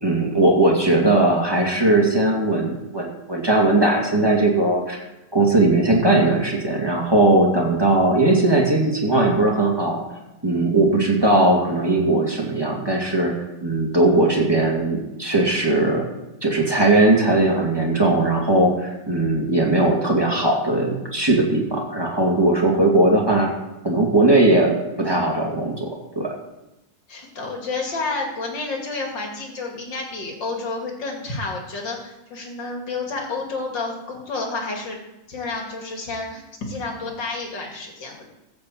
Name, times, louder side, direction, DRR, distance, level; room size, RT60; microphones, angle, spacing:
voice 1, 0.0-5.0 5.3-10.0 10.4-13.3 13.6-16.0 16.4-23.5 23.8-26.3, right 2 dB, 15° right, -1 dB, 2.4 m, -19 dB
voice 2, 27.1-35.0 35.3-38.3, left 3 dB, 75° left, 0 dB, 3.1 m, -30 dB
14.5 x 5.7 x 7.6 m, 0.97 s
omnidirectional pair, 2.0 m